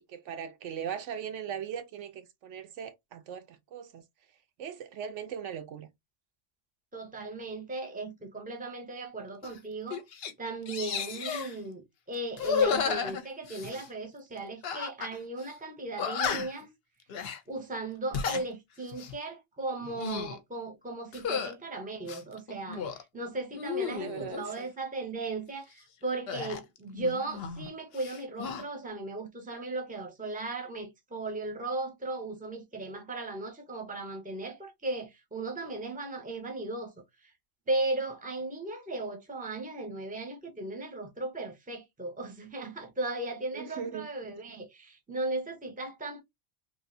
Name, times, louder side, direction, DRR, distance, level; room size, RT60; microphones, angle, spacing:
voice 1, 0.1-4.0 4.6-5.9 23.8-24.7 43.5-44.1, right 8 dB, 75° right, 1.0 m, -39 dB
voice 2, 6.9-10.0 10.4-16.7 17.5-36.9 37.2-37.3 37.7-46.2, right 2 dB, 10° right, 0.7 m, -36 dB
sound 1, 9.4-9.6 9.9-10.3 10.7-11.5 12.3-13.9 14.6-15.1 15.4-15.5 16.0-16.6 17.1-17.4 18.0-18.4 18.9-19.2 19.8-20.4 21.1-21.5 22.0-23.0 23.5-24.5 26.3-27.7 27.9-28.6, left 6 dB, 60° left, 0.8 m, -33 dB
3.2 x 2.6 x 2.6 m
omnidirectional pair, 1.3 m